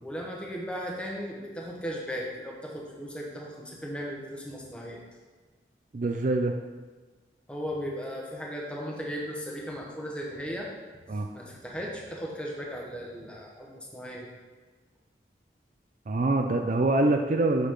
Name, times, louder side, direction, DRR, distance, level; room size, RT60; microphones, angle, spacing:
voice 1, 0.0-5.0 7.5-10.7 10.9-11.0 11.3-14.3, equal, 5° left, -2 dB, 1.3 m, -36 dB
voice 2, 5.9-6.5 11.1-11.3 16.1-17.7, right 2 dB, 45° right, 4 dB, 0.5 m, -25 dB
8.1 x 6.5 x 3.8 m, 1.3 s
head